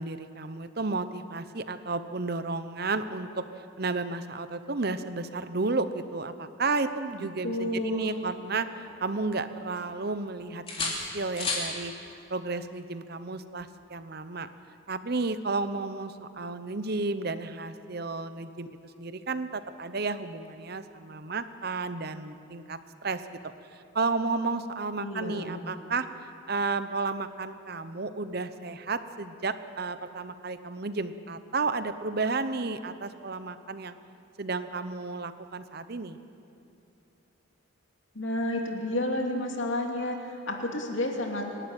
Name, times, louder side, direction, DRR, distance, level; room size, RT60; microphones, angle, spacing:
voice 1, 0.0-3.5 3.8-8.7 9.0-14.5 14.9-23.2 23.7-26.1 26.5-34.0 34.4-36.2, right 3 dB, 50° right, 11 dB, 0.9 m, -32 dB
voice 2, 7.2-8.2 25.0-25.6 38.1-40.2 40.5-41.5, left 1 dB, 65° left, 1 dB, 2.7 m, -31 dB
sound 1, 7.5-9.1 9.4-10.3 10.7-11.7 13.6-13.8, left 3 dB, 30° left, 3.3 m, -36 dB
26.5 x 12.0 x 9.0 m, 2.7 s
head